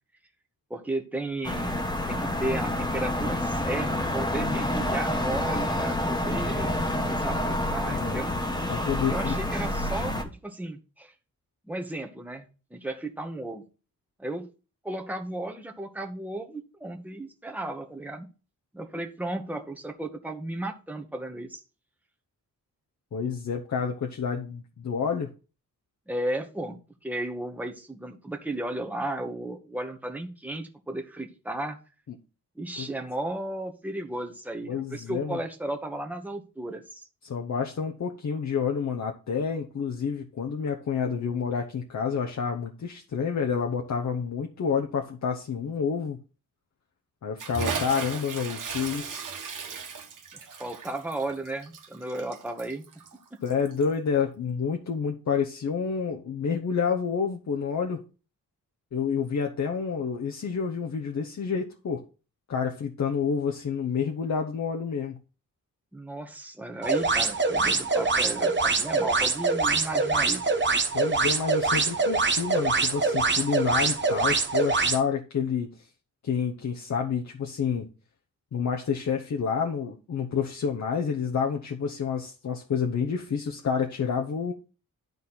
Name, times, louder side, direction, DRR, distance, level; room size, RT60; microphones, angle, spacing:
voice 1, 0.7-1.8 2.1-6.7 7.0-8.3 9.1-11.1 11.6-13.6 14.2-14.5 14.8-18.3 18.7-21.6 26.1-31.8 32.6-37.1 50.3-52.8 65.9-70.4, right 1 dB, 5° right, 3 dB, 1.1 m, -34 dB
sound 1, 1.4-10.2, left 1 dB, 10° left, 1.3 m, -28 dB
voice 2, 7.9-8.2 8.7-9.4 23.1-25.3 32.1-32.2 32.8-32.9 34.7-35.4 37.2-46.2 47.2-49.3 53.4-58.0 58.9-62.0 62.5-65.2 70.9-75.7 76.2-77.9 78.5-84.5, left 6 dB, 55° left, 2 dB, 1.0 m, -29 dB
Bathtub (filling or washing) / Splash splatter, 47.4-53.9, right 5 dB, 65° right, 1.4 m, -36 dB
sound 2, 66.8-75.0, right 3 dB, 35° right, 0.9 m, -24 dB
12.0 x 4.2 x 4.1 m, 0.34 s
wide cardioid pair, 120°, 34 cm